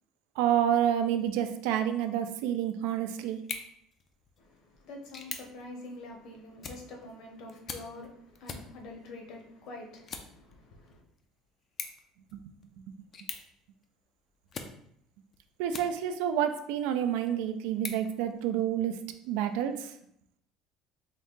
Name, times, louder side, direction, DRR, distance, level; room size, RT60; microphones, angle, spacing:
voice 1, 0.4-3.4 12.3-12.4 15.6-19.0 19.3-19.9, right 10 dB, 80° right, 0.4 m, -29 dB
sound 1, 3.3-16.3 16.8-18.9, left 5 dB, 25° left, 0.3 m, -46 dB
voice 2, 4.4-11.0, left 2 dB, 50° left, 0.8 m, -46 dB
3.8 x 2.6 x 3.6 m
cardioid pair, 175°, 0 cm